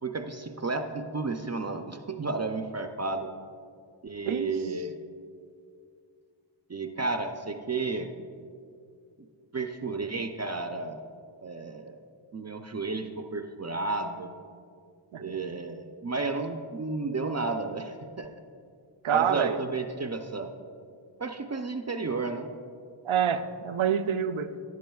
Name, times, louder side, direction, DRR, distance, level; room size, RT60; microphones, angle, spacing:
voice 1, 0.0-3.3 4.0-4.9 6.7-8.1 9.2-9.3 9.5-11.0 11.4-12.0 12.3-14.3 15.2-18.3 19.1-20.5 21.2-22.5, right 3 dB, 35° right, 6 dB, 0.5 m, -32 dB
voice 2, 19.0-19.6 23.1-24.5, right 8 dB, 85° right, 10 dB, 0.6 m, -26 dB
14.5 x 11.0 x 2.3 m, 2.3 s
wide cardioid pair, 75°, 48 cm